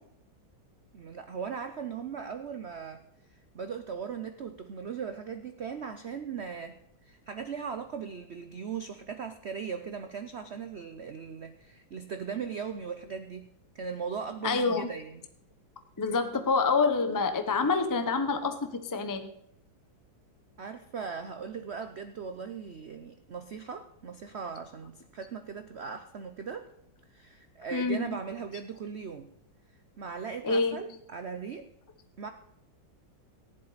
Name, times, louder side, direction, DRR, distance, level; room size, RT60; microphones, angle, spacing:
voice 1, 0.9-3.0 3.5-6.8 7.0-15.3 20.6-26.7 27.1-29.3 30.0-31.7 32.2-32.3, right 6 dB, 80° right, 9 dB, 0.5 m, -38 dB
voice 2, 14.4-14.9 16.0-19.3 27.7-28.0 30.4-30.8, left 4 dB, 20° left, 8 dB, 0.5 m, -27 dB
15.0 x 11.0 x 4.1 m, 0.75 s
omnidirectional pair, 2.2 m